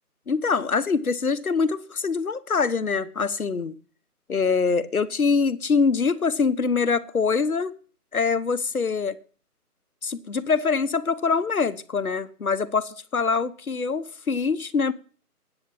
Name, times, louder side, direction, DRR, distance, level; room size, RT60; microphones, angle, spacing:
voice 1, 0.3-3.8 4.3-7.7 8.1-9.2 10.0-14.9, left 5 dB, 65° left, 1.1 m, -24 dB
10.5 x 8.2 x 7.0 m
figure-of-eight pair, 170°, 46 cm